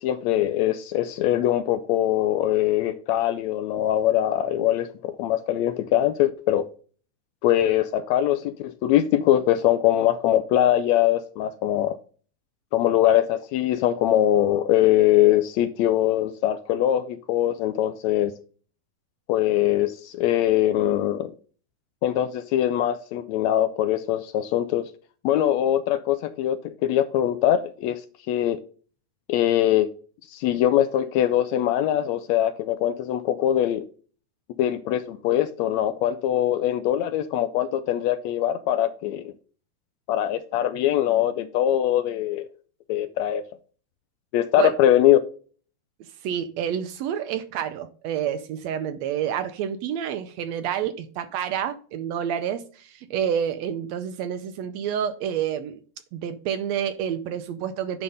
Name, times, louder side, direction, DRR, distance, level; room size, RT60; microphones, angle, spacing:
voice 1, 0.0-6.7 7.4-12.0 12.7-18.3 19.3-21.3 22.0-24.8 25.2-28.0 28.3-28.6 29.3-29.9 30.3-33.8 34.6-39.3 40.1-42.5 42.9-43.4 44.3-45.2, left 12 dB, 80° left, 1.7 m, -22 dB
voice 2, 46.0-55.8 56.1-58.0, right 9 dB, 75° right, 1.7 m, -29 dB
10.5 x 3.7 x 5.4 m
omnidirectional pair, 3.4 m